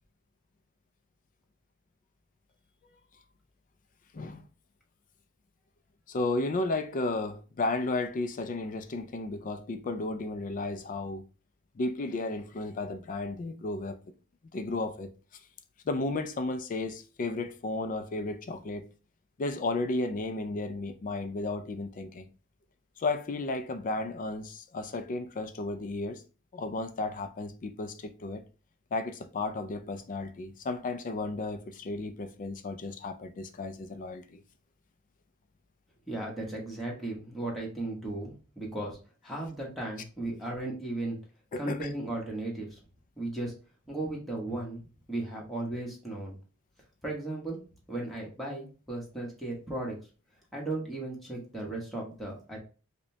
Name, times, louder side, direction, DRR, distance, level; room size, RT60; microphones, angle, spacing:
voice 1, 6.1-11.2 11.8-14.0 14.5-15.1 15.9-18.9 19.4-22.3 23.0-26.2 26.5-28.4 28.9-34.4 41.5-41.9, left 2 dB, 40° left, 0.4 m, -33 dB
voice 2, 36.1-39.0 39.2-41.2 41.6-42.8 43.2-43.5 43.9-46.4 47.0-47.6 47.9-49.9 50.5-52.6, right 2 dB, ahead, 1.0 m, -36 dB
5.0 x 2.2 x 2.7 m
head